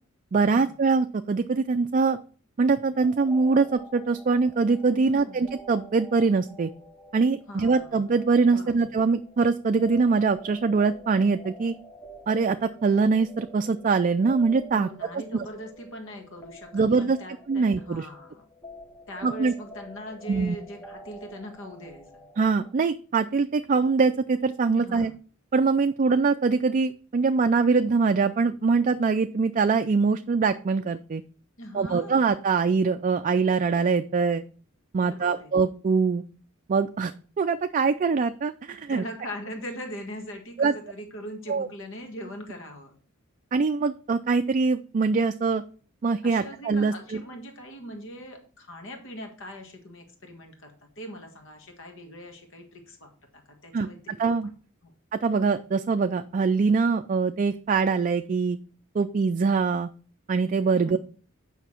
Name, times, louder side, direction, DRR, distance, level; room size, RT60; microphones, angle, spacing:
voice 1, 0.3-2.2 2.6-6.7 7.1-11.7 12.3-14.9 15.3-15.5 16.7-17.2 17.5-18.1 19.2-19.5 20.3-20.6 22.4-25.1 25.5-31.2 31.7-34.4 34.9-36.2 36.7-37.1 37.4-39.0 40.6-40.7 41.5-41.7 43.5-45.6 46.0-47.2 53.7-54.5 55.2-58.6 58.9-59.9 60.3-61.0, right 4 dB, 40° right, 8 dB, 0.4 m, -23 dB
sound 1, 3.0-22.7, right 1 dB, 10° left, 0.9 m, -48 dB
voice 2, 5.0-5.5 7.5-8.1 8.5-8.9 14.7-18.4 19.1-22.2 24.8-25.1 31.6-32.3 35.0-35.5 38.9-43.0 46.2-54.2 54.8-54.9 60.7-61.0, equal, 65° left, 3 dB, 1.6 m, -41 dB
8.1 x 5.7 x 4.4 m, 0.40 s
head